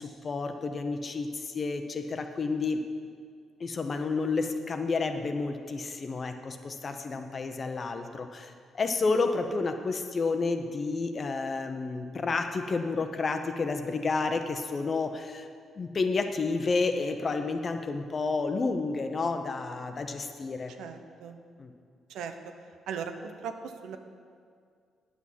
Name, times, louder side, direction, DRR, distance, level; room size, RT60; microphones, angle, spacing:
voice 1, 0.0-2.8 3.6-15.5 15.8-20.7 21.6-21.7, left 4 dB, 40° left, 6 dB, 0.9 m, -30 dB
voice 2, 20.8-21.4 22.1-22.5 22.9-24.0, right 6 dB, 85° right, 7 dB, 0.7 m, -38 dB
9.5 x 6.2 x 7.4 m, 2.2 s
cardioid pair, 90°, 0 cm